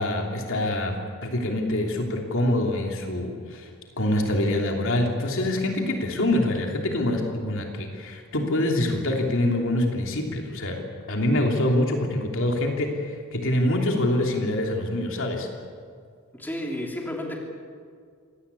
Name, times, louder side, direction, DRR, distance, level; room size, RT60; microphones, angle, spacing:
voice 1, 0.0-3.7 4.0-10.8 11.1-15.5, left 1 dB, 60° left, 2 dB, 3.2 m, -25 dB
voice 2, 16.4-17.4, left 1 dB, 10° left, 0 dB, 3.4 m, -31 dB
25.5 x 18.5 x 8.5 m, 2.1 s
head